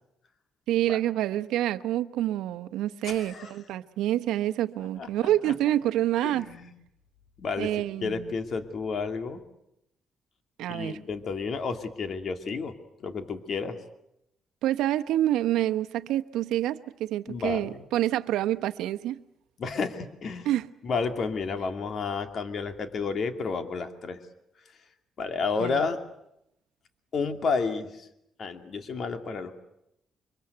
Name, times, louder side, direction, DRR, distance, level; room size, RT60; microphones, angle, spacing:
voice 1, 0.7-6.5 7.6-8.3 10.6-11.0 14.6-19.2 20.5-20.7 25.6-25.8, right 13 dB, 90° right, 0.9 m, -27 dB
voice 2, 3.0-3.5 5.0-5.1 5.4-5.5 6.2-6.7 7.4-7.7 8.0-9.4 10.7-13.8 17.3-17.8 19.6-20.5 20.8-24.2 25.2-26.0 27.1-28.1 28.4-29.6, left 4 dB, 55° left, 2.5 m, -31 dB
24.5 x 23.0 x 8.0 m
cardioid pair, 90°, 0 cm